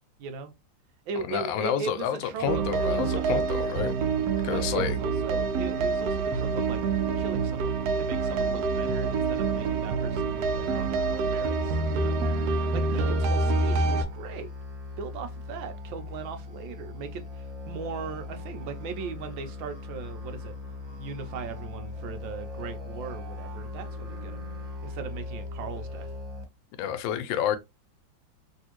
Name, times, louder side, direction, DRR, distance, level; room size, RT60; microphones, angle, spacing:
voice 1, 0.2-0.5 1.1-3.6 4.5-6.8 7.2-12.2 12.7-14.5 15.0-20.6 21.0-24.4 24.8-26.1, right 5 dB, 90° right, 1.5 m, -38 dB
voice 2, 1.2-3.9 4.4-5.0 26.8-27.6, left 9 dB, 85° left, 1.3 m, -29 dB
sound 1, 2.5-14.0, right 4 dB, 70° right, 1.0 m, -26 dB
Musical instrument, 12.9-26.4, left 2 dB, 25° right, 1.1 m, -39 dB
3.3 x 2.7 x 2.9 m
omnidirectional pair, 2.0 m